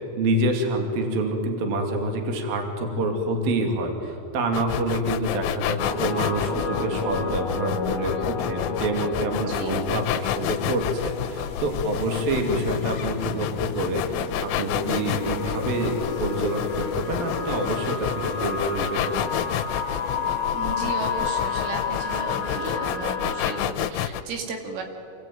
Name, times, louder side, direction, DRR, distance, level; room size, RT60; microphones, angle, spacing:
voice 1, 0.2-19.5, right 1 dB, 55° right, 3 dB, 3.9 m, -27 dB
sound 1, 4.5-24.2, left 11 dB, 85° left, 3.5 m, -30 dB
sound 2, 5.8-23.7, left 5 dB, 50° left, 2.6 m, -31 dB
voice 2, 9.3-9.9 20.5-24.8, right 4 dB, 80° right, 3 dB, 4.9 m, -35 dB
sound 3, 9.6-22.7, left 5 dB, 70° left, 1.7 m, -40 dB
27.5 x 20.5 x 9.3 m, 2.9 s
omnidirectional pair, 5.6 m